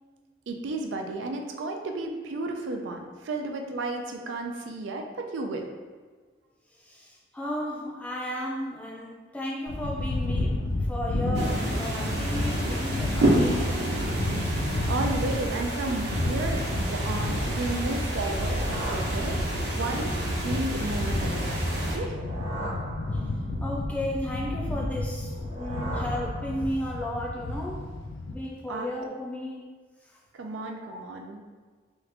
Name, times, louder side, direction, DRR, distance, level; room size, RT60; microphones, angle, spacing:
voice 1, 0.5-5.7 14.9-22.2 28.7-28.9 30.3-31.4, right 2 dB, 90° right, 3 dB, 0.4 m, -33 dB
voice 2, 6.8-14.1 23.6-27.9 28.3-29.7, left 1 dB, 10° left, -4 dB, 0.4 m, -34 dB
sound 1, 9.7-28.3, left 2 dB, 80° left, 0.4 m, -32 dB
sound 2, 11.3-22.0, right 1 dB, 65° right, 0.9 m, -29 dB
sound 3, 18.1-19.9 21.8-23.7 25.2-27.0, right 1 dB, 35° right, 0.8 m, -39 dB
3.0 x 2.4 x 3.3 m, 1.5 s
head